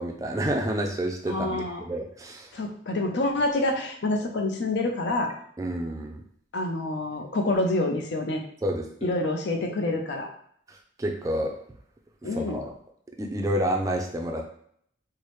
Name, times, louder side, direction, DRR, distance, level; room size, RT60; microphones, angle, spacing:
voice 1, 0.0-2.5 5.6-6.2 8.6-9.1 11.0-11.6 12.4-12.7 13.2-14.5, right 1 dB, 20° right, 2 dB, 0.3 m, -29 dB
voice 2, 1.3-1.8 2.5-5.3 6.5-8.4 9.0-10.3 12.2-12.6, left 2 dB, 70° left, 4 dB, 0.6 m, -27 dB
4.6 x 2.0 x 3.1 m, 0.65 s
head